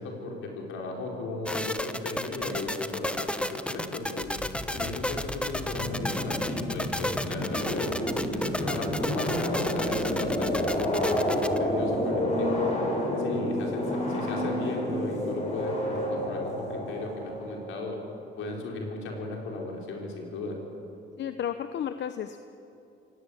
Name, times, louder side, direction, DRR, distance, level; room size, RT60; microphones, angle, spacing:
voice 1, 0.0-4.3 4.7-7.9 8.3-12.8 13.2-13.8 14.1-18.0 18.4-20.6, left 2 dB, 85° left, 0 dB, 4.8 m, -36 dB
sound 1, 1.5-11.6, left 1 dB, 5° left, 1.1 m, -32 dB
sound 2, 4.2-17.6, left 1 dB, 35° left, 7.5 m, -30 dB
voice 2, 21.2-22.5, left 9 dB, 65° left, 10 dB, 0.9 m, -33 dB
27.0 x 17.5 x 8.5 m, 2.8 s
cardioid pair, 90°, 20 cm